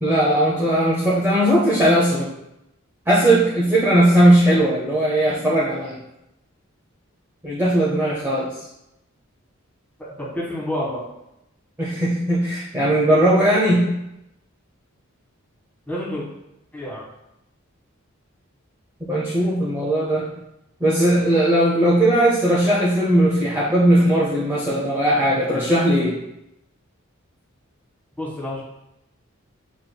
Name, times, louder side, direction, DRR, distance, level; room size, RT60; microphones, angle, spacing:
voice 1, 0.0-2.3 3.1-6.0 7.4-8.5 11.8-13.9 19.1-20.3 20.8-26.2, right 1 dB, 10° right, -8 dB, 0.7 m, -18 dB
voice 2, 10.0-11.0 15.9-16.3 16.7-17.0 28.2-28.6, left 1 dB, 10° left, -7 dB, 1.6 m, -29 dB
7.0 x 3.1 x 2.2 m, 0.87 s
head